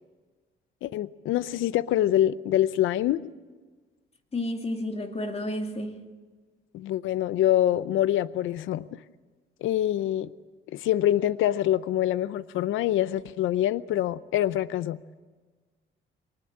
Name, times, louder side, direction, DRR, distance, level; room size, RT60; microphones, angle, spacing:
voice 1, 0.8-3.2 6.7-9.0 9.6-10.3 10.7-15.0, left 12 dB, 85° left, 0.7 m, -25 dB
voice 2, 4.3-5.9, left 1 dB, 30° left, 2.7 m, -31 dB
23.5 x 20.0 x 8.8 m
cardioid pair, 90°, 20 cm